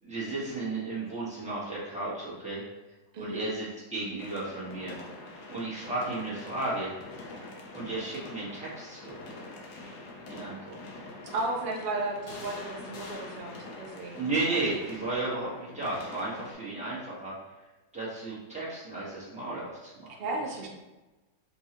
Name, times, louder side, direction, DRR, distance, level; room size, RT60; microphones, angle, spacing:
voice 1, 0.0-2.6 3.2-5.0 5.5-7.0 7.7-9.2 10.3-10.8 14.2-17.3 17.9-20.2, right 2 dB, 5° right, -9 dB, 0.8 m, -34 dB
voice 2, 3.1-3.5 11.3-14.6 20.2-20.7, right 2 dB, 65° right, -1 dB, 0.5 m, -34 dB
sound 1, 4.2-16.5, left 2 dB, 65° left, 1.2 m, -44 dB
5.3 x 2.3 x 2.9 m, 1.1 s
omnidirectional pair, 2.0 m